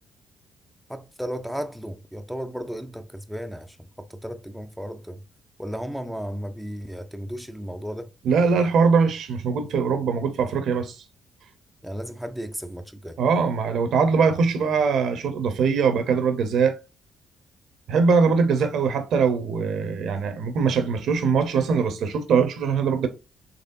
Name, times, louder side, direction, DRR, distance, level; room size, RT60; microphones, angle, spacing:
voice 1, 0.9-5.2 5.6-8.1 11.8-13.2, equal, ahead, 0.4 m, -34 dB
voice 2, 8.2-11.0 13.2-16.8 17.9-23.1, right 5 dB, 75° right, 0.7 m, -22 dB
4.1 x 3.1 x 2.6 m
cardioid pair, 90°, 0 cm